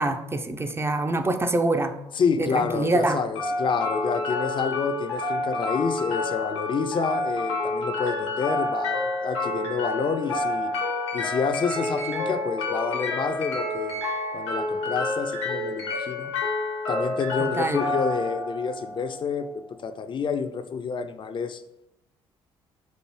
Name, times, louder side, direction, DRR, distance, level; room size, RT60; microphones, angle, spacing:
voice 1, 0.0-1.9 2.4-3.2 17.4-17.9, right 2 dB, 15° right, 7 dB, 0.5 m, -25 dB
voice 2, 2.1-10.7 11.1-14.0 14.3-16.3 16.9-21.6, left 5 dB, 35° left, 9 dB, 0.5 m, -28 dB
sound 1, 3.3-19.4, left 2 dB, 85° left, 0.9 m, -29 dB
4.7 x 2.6 x 4.3 m, 0.86 s
figure-of-eight pair, 45°, 14 cm